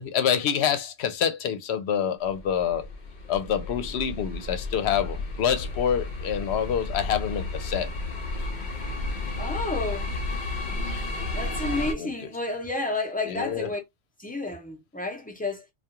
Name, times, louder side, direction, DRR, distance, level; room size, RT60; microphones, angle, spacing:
voice 1, 0.0-2.9 3.3-7.9 12.0-12.1 13.2-13.7, left 8 dB, 80° left, 0.8 m, -26 dB
sound 1, 2.2-11.9, left 2 dB, 55° left, 0.6 m, -32 dB
voice 2, 9.4-10.1 11.3-13.8 14.2-15.6, left 2 dB, 10° left, 0.6 m, -31 dB
2.3 x 2.3 x 2.8 m
omnidirectional pair, 1.1 m